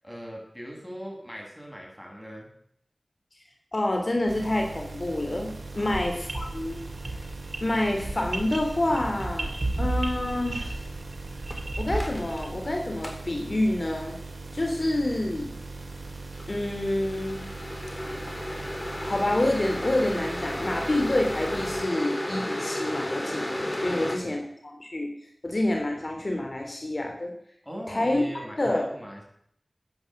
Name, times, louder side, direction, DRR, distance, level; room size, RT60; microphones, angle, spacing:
voice 1, 0.0-2.5 5.7-6.1 23.8-24.4 27.6-29.2, equal, ahead, -1 dB, 7.3 m, -41 dB
voice 2, 3.7-6.8 7.0-7.2 7.6-9.5 9.8-10.8 11.8-14.2 14.5-15.5 16.5-17.4 19.0-25.1 25.4-27.3 27.9-28.2 28.6-28.9, left 1 dB, 55° left, 2 dB, 3.2 m, -28 dB
sound 1, 4.3-21.8, right 3 dB, 80° right, 3.4 m, -40 dB
sound 2, 5.9-12.7, right 2 dB, 65° right, 3.0 m, -33 dB
sound 3, 8.9-9.0 11.5-12.4 13.0-13.2 16.3-24.2, left 1 dB, 25° left, 3.7 m, -33 dB
15.0 x 9.7 x 7.8 m, 0.67 s
wide cardioid pair, 60°, 0 cm